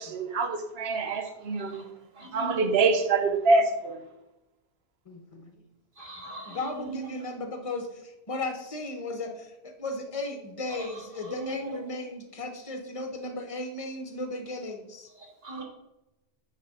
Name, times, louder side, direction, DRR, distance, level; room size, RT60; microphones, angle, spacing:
voice 1, 0.1-1.8 2.3-4.0, right 3 dB, 80° right, 1.0 m, -25 dB
voice 2, 0.9-1.2 1.7-1.8 2.2-2.6 6.0-7.0 10.7-10.9 11.2-11.8 15.2-15.6, right 2 dB, 55° right, 1.9 m, -39 dB
voice 3, 5.1-5.5 6.5-15.1, left 2 dB, 35° left, 1.0 m, -36 dB
9.5 x 3.2 x 5.3 m
omnidirectional pair, 1.1 m